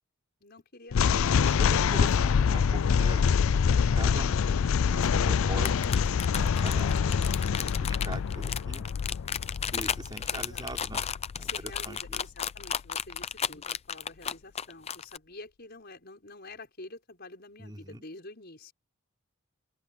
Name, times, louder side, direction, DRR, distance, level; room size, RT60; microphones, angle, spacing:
voice 1, 0.4-1.7 10.3-10.7 11.4-18.7, left 2 dB, 50° left, 6.2 m, -47 dB
sound 1, 0.9-12.2, left 6 dB, 75° left, 0.4 m, -26 dB
voice 2, 1.3-3.2 3.9-6.0 6.3-7.4 7.7-8.9 9.7-11.1 11.4-12.2 17.6-18.0, right 1 dB, 20° right, 4.6 m, -42 dB
sound 2, 5.5-15.2, left 8 dB, 30° left, 0.6 m, -33 dB
open air
head